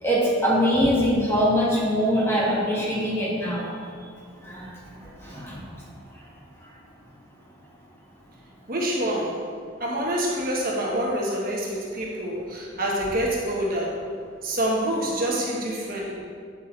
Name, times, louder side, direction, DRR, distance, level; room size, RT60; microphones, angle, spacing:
voice 1, 0.0-3.7 4.4-4.7 5.2-5.6, equal, 15° left, -6 dB, 1.8 m, -23 dB
voice 2, 8.7-9.5 9.8-14.0 14.4-16.2, right 1 dB, 45° right, -3 dB, 1.3 m, -26 dB
8.9 x 8.0 x 3.3 m, 2.1 s
head